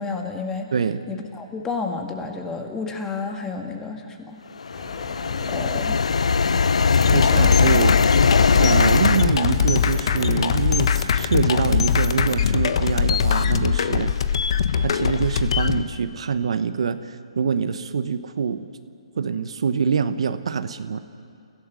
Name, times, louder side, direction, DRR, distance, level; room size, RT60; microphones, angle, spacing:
voice 1, 0.0-0.7 1.1-4.4 5.5-6.0 7.3-7.5, left 4 dB, 15° left, 4 dB, 2.1 m, -31 dB
sound 1, 4.6-9.3, left 5 dB, 75° left, 0.4 m, -19 dB
sound 2, 4.7-10.5, left 3 dB, 40° left, 7.4 m, -38 dB
sound 3, 6.9-15.8, left 7 dB, 60° left, 1.1 m, -21 dB
voice 2, 7.1-8.3 8.6-14.1 14.8-18.7 19.2-21.0, right 6 dB, 65° right, 11 dB, 1.0 m, -25 dB
30.0 x 16.5 x 6.4 m, 2.4 s
hypercardioid pair, 140°, 3 cm